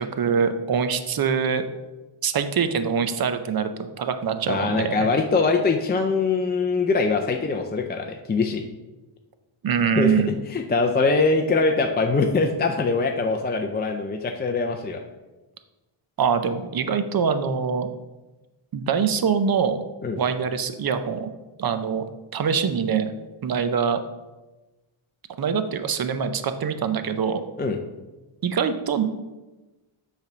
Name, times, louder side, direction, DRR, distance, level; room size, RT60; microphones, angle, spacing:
voice 1, 0.0-1.6 2.2-5.1 9.6-10.3 16.2-17.9 18.7-19.8 20.2-21.3 21.6-22.0 22.3-23.1 23.4-24.0 25.4-27.4 28.4-29.0, right 6 dB, 45° right, 9 dB, 0.6 m, -24 dB
voice 2, 4.5-8.6 10.0-10.1 10.5-15.0 20.0-20.2 27.6-27.8, left 4 dB, 20° left, 3 dB, 0.4 m, -23 dB
8.1 x 3.4 x 6.0 m, 1.1 s
wide cardioid pair, 155°, 50 cm